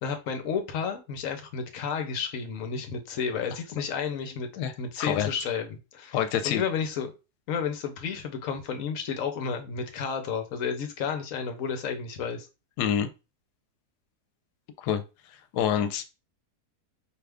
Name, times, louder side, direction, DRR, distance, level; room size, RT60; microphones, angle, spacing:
voice 1, 0.0-4.5 4.8-7.1 7.5-12.5, left 6 dB, 60° left, 7 dB, 1.0 m, -32 dB
voice 2, 6.1-6.6 12.8-13.1 14.8-15.0 15.5-16.0, left 9 dB, 80° left, 10 dB, 1.1 m, -26 dB
4.6 x 2.4 x 3.4 m, 0.28 s
omnidirectional pair, 1.7 m